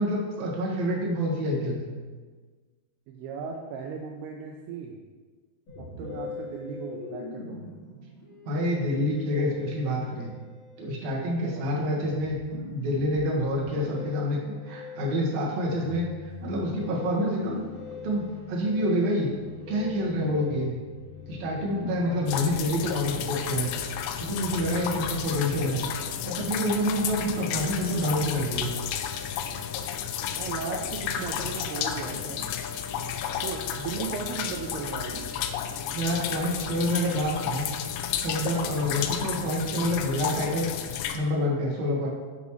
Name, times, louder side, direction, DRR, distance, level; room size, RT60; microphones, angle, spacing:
voice 1, 0.0-1.9 8.5-10.3 10.8-12.4 12.7-14.4 14.6-17.6 18.0-19.3 19.7-20.8 21.3-23.7 24.2-25.8 26.2-28.7 35.9-37.7 38.2-40.7 41.1-42.1, equal, 55° right, -4 dB, 2.3 m, -27 dB
voice 2, 3.1-5.0 5.8-7.7 11.5-11.7 22.1-22.3 30.4-32.5 33.4-35.3, right 6 dB, 80° right, 1 dB, 2.5 m, -37 dB
Musical instrument, 5.7-23.3, left 3 dB, 45° left, 3.1 m, -43 dB
sound 1, 17.1-23.5, left 5 dB, 70° left, 2.6 m, -47 dB
sound 2, 22.3-41.2, left 8 dB, 85° left, 2.7 m, -32 dB
9.3 x 7.1 x 3.2 m, 1.4 s
omnidirectional pair, 4.9 m